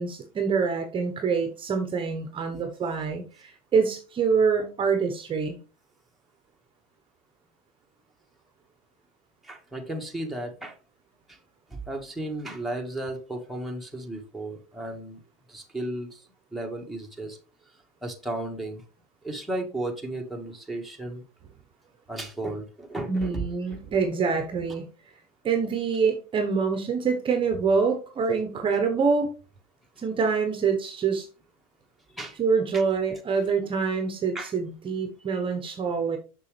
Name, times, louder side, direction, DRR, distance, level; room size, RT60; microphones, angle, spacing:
voice 1, 0.0-5.6 23.1-24.9 25.4-29.3 30.0-31.3 32.4-36.2, right 5 dB, 30° right, 6 dB, 1.1 m, -25 dB
voice 2, 9.4-10.8 11.3-11.4 11.7-15.2 15.5-16.2 16.5-17.4 18.0-18.8 19.2-21.2 22.1-23.4 32.1-32.4 32.7-32.8 34.3-34.5, right 1 dB, ahead, 0 dB, 1.7 m, -34 dB
6.7 x 6.2 x 3.4 m, 0.34 s
hypercardioid pair, 100°, 19 cm